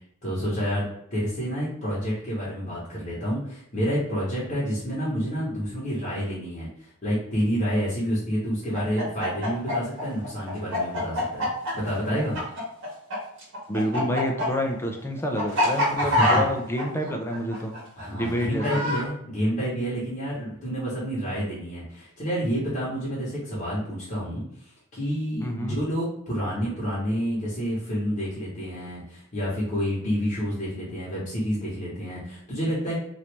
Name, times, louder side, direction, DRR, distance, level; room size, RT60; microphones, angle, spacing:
voice 1, 0.2-0.8 1.1-11.5 11.7-12.4 16.0-16.4 18.0-33.0, equal, 40° left, -7 dB, 1.0 m, -29 dB
Chicken rooster, 8.7-13.2 13.4-19.0, left 1 dB, 60° right, 1.5 m, -25 dB
voice 2, 13.7-17.7 18.1-18.8 25.4-25.8, equal, 10° left, 2 dB, 0.4 m, -28 dB
3.0 x 2.6 x 3.3 m, 0.72 s
head